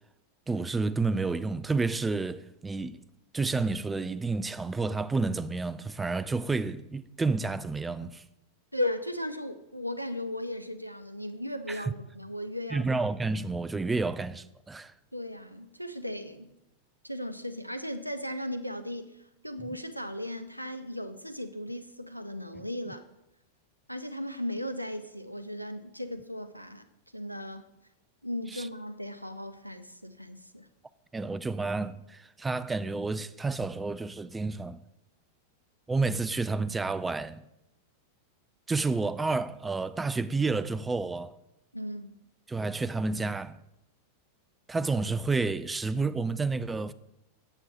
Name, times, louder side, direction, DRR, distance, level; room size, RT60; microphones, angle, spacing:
voice 1, 0.5-3.0 3.3-8.2 11.7-11.8 12.7-14.9 28.5-28.7 31.1-34.8 35.9-37.4 38.7-41.4 42.5-43.6 44.7-46.9, right 3 dB, 10° right, 0.3 m, -30 dB
voice 2, 8.7-12.9 15.1-16.5 17.0-23.0 23.9-26.9 27.1-27.7 28.2-30.7 41.7-42.1, left 1 dB, 90° right, 0.6 m, -36 dB
7.8 x 7.3 x 4.3 m
figure-of-eight pair, 90°, 0 cm